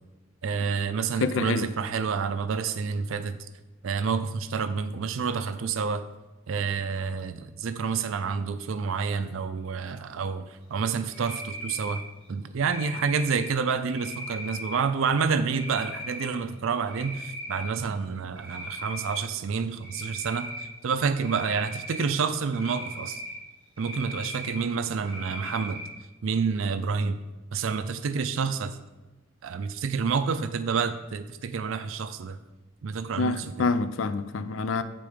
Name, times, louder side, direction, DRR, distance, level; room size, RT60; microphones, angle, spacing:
voice 1, 0.4-3.4 3.8-6.1 6.5-12.0 12.3-23.2 23.8-25.8 26.2-27.2 27.5-28.8 29.4-32.4 32.8-33.7, right 5 dB, 65° right, 11 dB, 0.4 m, -29 dB
voice 2, 1.2-1.7 33.2-34.8, left 4 dB, 60° left, 11 dB, 0.4 m, -27 dB
Cricket, 11.1-12.0 12.6-13.4 13.9-14.7 15.5-16.3 16.7-17.7 18.1-19.2 19.8-20.6 21.2-22.0 22.5-23.3 23.8-24.6 25.0-25.9, equal, 25° right, 1.9 m, -38 dB
8.6 x 3.7 x 4.9 m, 1.1 s
head